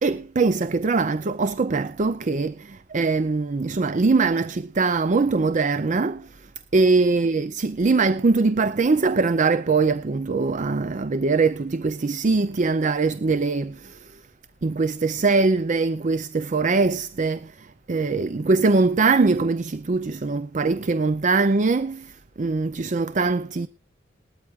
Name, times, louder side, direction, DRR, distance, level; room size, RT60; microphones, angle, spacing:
voice 1, 0.0-6.3 6.7-14.0 14.6-22.1 22.4-23.7, right 3 dB, 40° right, 0.5 m, -22 dB
19.5 x 13.0 x 2.4 m
head